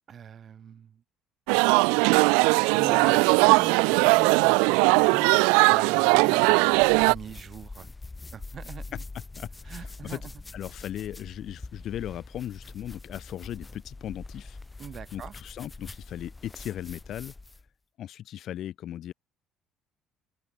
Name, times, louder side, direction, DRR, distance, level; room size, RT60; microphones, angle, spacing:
voice 1, 0.1-1.0 2.7-7.9 8.3-8.8 9.7-10.3 14.8-15.3, right 8 dB, 50° right, 2.8 m, -40 dB
sound 1, 1.5-7.2, right 35 dB, 85° right, 0.6 m, -20 dB
sound 2, 6.7-17.7, left 3 dB, 20° left, 4.2 m, -44 dB
voice 2, 9.4-10.2 10.5-14.6 15.1-17.3 18.0-19.1, left 11 dB, 60° left, 2.7 m, -37 dB
open air
supercardioid pair, 75°, 0 cm